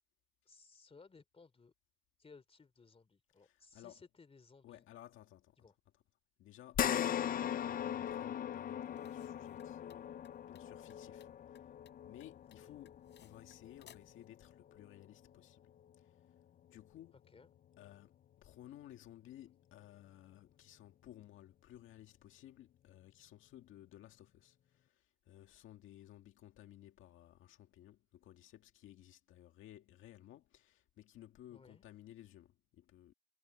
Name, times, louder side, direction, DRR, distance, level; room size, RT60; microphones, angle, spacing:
voice 1, 0.5-1.7 2.2-4.9 5.6-5.8 12.5-12.7 17.3-17.5 31.5-31.8, left 4 dB, 30° left, 3.0 m, -61 dB
voice 2, 3.4-4.0 4.6-5.6 6.4-6.8 7.5-11.3 12.0-15.6 16.7-17.2 17.8-18.1 18.4-33.1, left 12 dB, 85° left, 2.0 m, -57 dB
sound 1, 6.7-15.4 15.8-15.9 17.4-17.5, left 10 dB, 45° left, 0.5 m, -40 dB
sound 2, 8.8-14.2, left 9 dB, 60° left, 5.9 m, -65 dB
cardioid pair, 90°, 20 cm